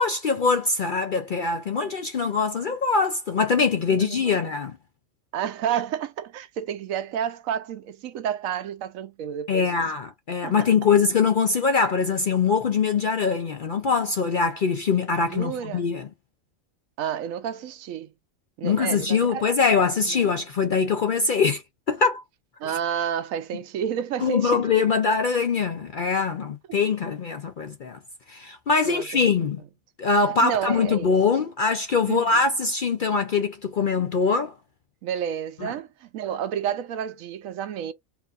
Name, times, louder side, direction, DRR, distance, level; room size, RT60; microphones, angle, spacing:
voice 1, 0.0-4.8 9.5-16.1 18.6-21.6 21.9-22.2 22.6-22.7 24.2-28.0 28.3-29.6 30.0-34.5 35.6-35.7, left 5 dB, 55° left, 0.5 m, -23 dB
voice 2, 4.0-4.4 5.3-9.9 10.4-10.6 15.3-15.9 17.0-18.1 18.6-19.5 20.1-20.3 22.6-24.6 26.7-26.8 28.9-29.3 30.4-31.1 32.1-32.4 35.0-37.9, right 9 dB, 80° right, 1.0 m, -30 dB
4.6 x 2.6 x 2.4 m
omnidirectional pair, 1.4 m